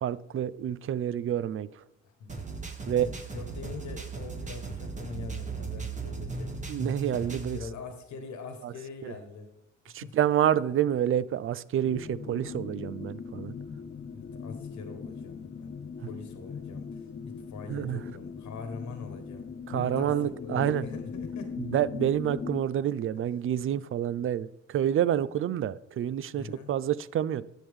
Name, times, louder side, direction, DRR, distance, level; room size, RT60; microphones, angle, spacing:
voice 1, 0.0-1.7 2.9-3.1 6.7-7.6 8.6-8.7 9.9-13.5 17.7-18.0 19.7-20.9 21.6-27.4, right 10 dB, 45° right, 0.4 m, -28 dB
voice 2, 2.0-2.4 2.9-6.6 7.5-9.5 9.9-10.2 14.1-21.6 26.3-26.7, left 4 dB, 70° left, 1.3 m, -43 dB
sound 1, 2.3-7.6, right 4 dB, 25° right, 1.5 m, -37 dB
sound 2, 11.8-22.6, left 6 dB, 35° left, 0.5 m, -40 dB
10.0 x 7.3 x 3.6 m
cardioid pair, 90°, 30 cm